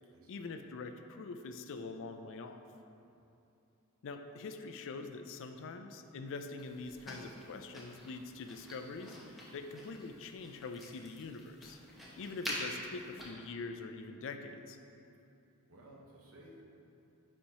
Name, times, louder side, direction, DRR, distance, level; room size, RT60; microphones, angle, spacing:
voice 1, 0.3-2.6 4.0-11.8 12.2-14.8, left 3 dB, 60° left, 6 dB, 0.4 m, -44 dB
sound 1, 6.6-13.3, equal, ahead, 1.0 m, -46 dB
voice 2, 15.6-16.6, right 1 dB, 70° right, -3 dB, 1.1 m, -56 dB
9.9 x 4.4 x 2.9 m, 2.8 s
head